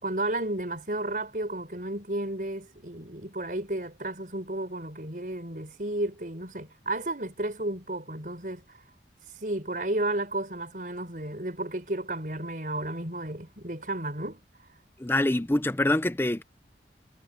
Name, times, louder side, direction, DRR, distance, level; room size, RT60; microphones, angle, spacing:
voice 1, 0.0-8.6 9.4-14.4, right 1 dB, 45° right, 5.3 m, -32 dB
voice 2, 15.0-16.4, left 1 dB, 10° left, 0.6 m, -25 dB
head